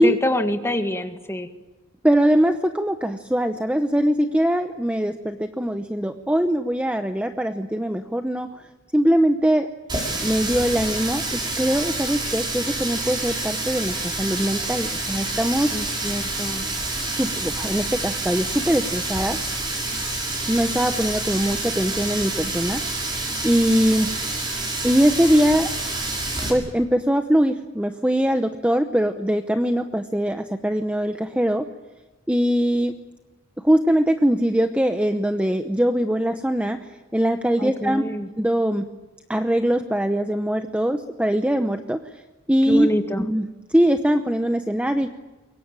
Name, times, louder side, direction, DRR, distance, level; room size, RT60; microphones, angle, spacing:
voice 1, 0.0-1.5 15.7-16.7 37.6-38.3 42.7-43.3, left 1 dB, 15° left, 6 dB, 1.9 m, -26 dB
voice 2, 2.0-8.5 8.9-9.7 10.2-15.7 17.2-19.4 20.5-22.8 23.4-24.1 24.8-25.7 26.5-31.7 32.3-32.9 33.6-36.9 37.1-38.0 38.4-38.9 39.3-42.0 42.5-42.9 43.2-45.1, equal, 5° right, 7 dB, 0.8 m, -21 dB
Water tap faucet, 9.9-26.5, right 2 dB, 25° right, 6.3 m, -28 dB
23.5 x 22.0 x 9.0 m, 1.2 s
head